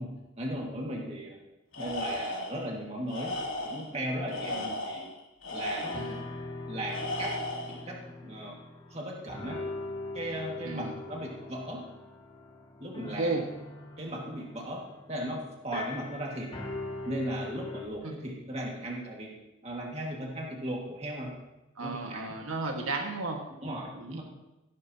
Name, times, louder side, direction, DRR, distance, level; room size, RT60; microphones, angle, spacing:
voice 1, 0.0-1.4 1.8-3.4 3.6-5.1 5.5-6.0 6.7-7.3 7.7-8.0 8.2-8.6 8.9-9.6 10.1-11.8 12.8-13.4 14.0-16.5 17.1-19.3 19.6-21.3 21.8-22.2 23.6-24.2, right 1 dB, 30° right, -1 dB, 1.9 m, -37 dB
Tools, 1.7-2.6 3.1-3.9 4.3-6.2 6.9-7.8, left 1 dB, 70° left, 2.7 m, -35 dB
sound 1, 5.5-5.6 5.8-9.0 9.3-17.9, left 2 dB, 25° left, 1.2 m, -41 dB
voice 2, 21.8-23.4 23.9-24.2, right 3 dB, 85° right, 2 dB, 1.6 m, -33 dB
15.5 x 11.5 x 2.9 m, 0.99 s
head